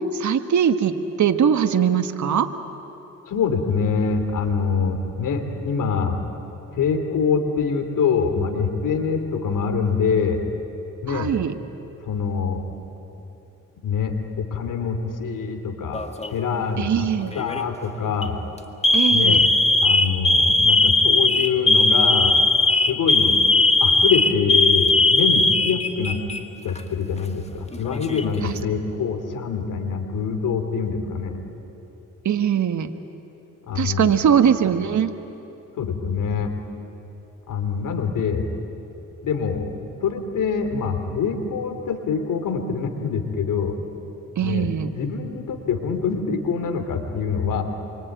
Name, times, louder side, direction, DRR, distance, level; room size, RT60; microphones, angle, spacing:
voice 1, 0.1-2.5 11.1-11.5 16.8-17.3 18.9-19.4 28.4-28.6 32.2-32.9 33.7-35.1 44.4-44.9, right 8 dB, 65° right, 8 dB, 1.5 m, -21 dB
voice 2, 3.3-6.2 6.7-10.4 11.0-11.3 12.0-12.6 13.8-16.0 16.3-18.4 19.1-19.5 19.8-22.4 22.9-23.4 23.8-26.2 26.6-31.4 33.6-34.2 35.8-36.5 37.5-38.5 39.2-39.7 40.0-43.8 44.4-47.6, left 5 dB, 80° left, 6 dB, 3.0 m, -25 dB
Alarm, 15.9-16.4 17.3-17.6 18.1-18.3 18.8-26.4 26.7-26.8 27.7-28.4, left 2 dB, 20° left, 1.9 m, -18 dB
27.0 x 24.0 x 9.2 m, 3.0 s
cardioid pair, 80°, 32 cm